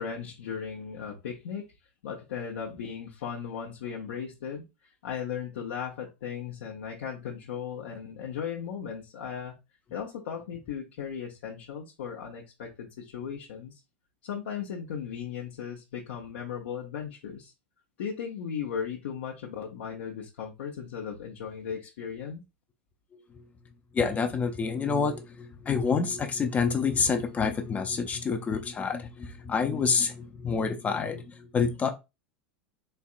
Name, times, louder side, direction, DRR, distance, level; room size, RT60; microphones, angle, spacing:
voice 1, 0.0-1.7 2.0-9.6 9.9-13.8 14.2-17.5 18.0-22.4, left 7 dB, 65° left, 0.8 m, -37 dB
voice 2, 23.9-31.9, left 5 dB, 25° left, 0.6 m, -28 dB
4.4 x 3.5 x 2.5 m
figure-of-eight pair, 85°, 6 cm